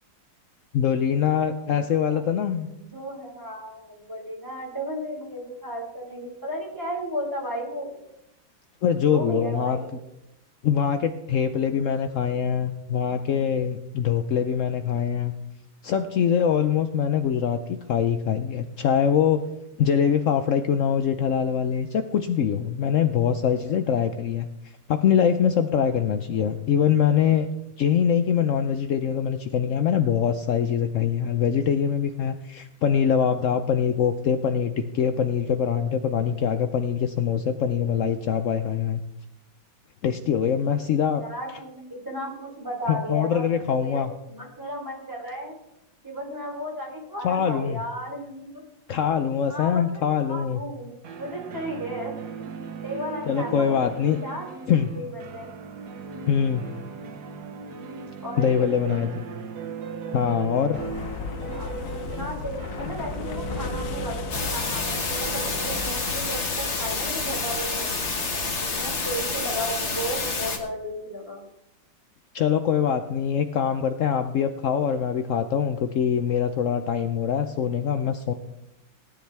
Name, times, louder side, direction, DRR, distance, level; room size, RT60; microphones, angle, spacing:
voice 1, 0.7-2.7 8.8-9.8 10.6-15.3 15.8-17.6 17.9-19.4 19.8-24.5 24.9-27.5 27.8-39.0 40.0-41.2 42.9-44.1 47.2-47.8 48.9-50.6 53.3-54.2 54.7-54.9 56.3-56.6 58.4-59.2 60.1-60.8 72.3-78.3, left 8 dB, 75° left, 8 dB, 0.7 m, -23 dB
voice 2, 1.6-2.3 2.8-7.9 9.0-9.9 23.5-23.7 26.3-26.6 41.0-45.5 46.0-48.6 49.5-50.0 50.3-52.1 52.8-54.5 54.9-55.5 58.2-59.0 61.4-67.9 68.7-71.4, equal, 10° right, -2 dB, 3.4 m, -34 dB
sound 1, 51.0-67.8, right 6 dB, 60° right, 1.4 m, -38 dB
sound 2, 60.7-68.8, left 5 dB, 55° left, 1.0 m, -36 dB
sound 3, 64.3-70.6, left 4 dB, 40° left, 1.7 m, -28 dB
17.5 x 10.0 x 3.4 m, 0.85 s
omnidirectional pair, 2.1 m